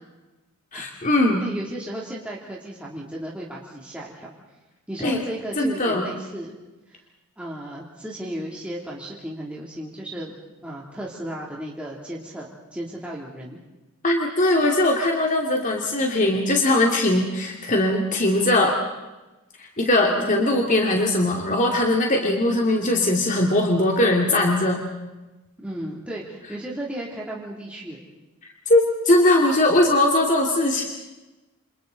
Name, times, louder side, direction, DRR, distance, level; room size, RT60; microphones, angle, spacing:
voice 1, 0.7-1.4 5.0-5.2 5.6-6.1 14.0-18.8 19.6-24.8 28.7-30.9, left 1 dB, 35° left, 1 dB, 2.5 m, -20 dB
voice 2, 1.4-4.3 4.9-6.5 6.9-7.0 7.4-10.3 10.6-13.6 20.1-20.4 25.6-28.1, right 1 dB, 5° right, -4 dB, 2.9 m, -34 dB
28.5 x 28.0 x 4.0 m, 1.1 s
head